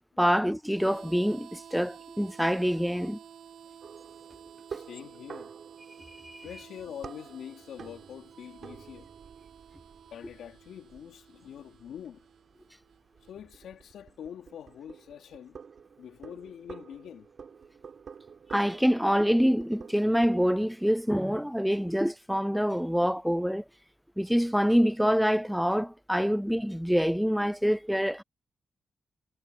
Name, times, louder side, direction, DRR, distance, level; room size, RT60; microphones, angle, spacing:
voice 1, 0.2-3.2 6.2-6.5 18.5-23.6 24.2-28.2, equal, ahead, 0.3 m, -26 dB
Harmonica, 0.7-13.3, right 8 dB, 75° right, 4.6 m, -52 dB
sound 1, 3.8-21.3, right 6 dB, 60° right, 4.1 m, -49 dB
voice 2, 4.7-5.5 6.4-9.1 10.1-12.2 13.2-15.6 16.0-17.3, left 9 dB, 85° left, 2.9 m, -45 dB
cardioid pair, 80°, 0 cm